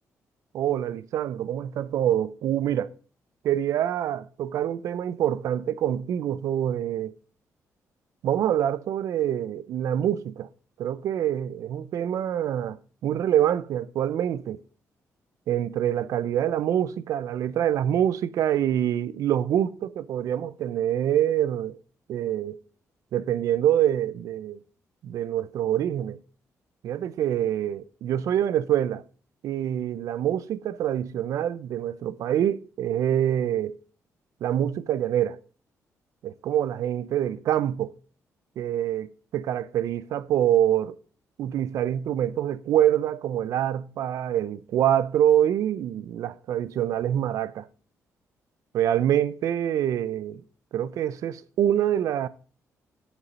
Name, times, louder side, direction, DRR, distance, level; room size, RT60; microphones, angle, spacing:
voice 1, 0.5-2.9 3.4-7.1 8.2-10.5 10.8-14.6 15.5-21.8 22.1-22.6 23.1-24.6 25.0-26.2 26.8-29.0 29.4-33.8 34.4-35.4 36.2-37.9 38.6-41.0 41.4-47.7 48.7-50.4 50.7-52.3, right 10 dB, 70° right, 0.6 m, -25 dB
9.0 x 7.1 x 5.4 m
cardioid pair, 175°, 6 cm